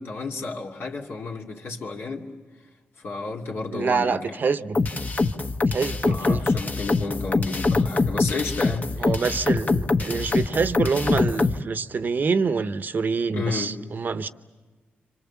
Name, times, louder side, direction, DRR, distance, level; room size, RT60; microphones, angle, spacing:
voice 1, 0.0-2.3 3.0-4.3 6.1-9.1 13.3-13.7, left 3 dB, 65° left, 0 dB, 2.7 m, -32 dB
voice 2, 3.7-4.8 5.7-6.4 9.0-14.3, right 5 dB, 50° right, 11 dB, 0.9 m, -26 dB
sound 1, 4.7-11.6, left 3 dB, 40° left, 1.1 m, -23 dB
27.5 x 26.0 x 7.2 m, 1.4 s
cardioid pair, 90°, 4 cm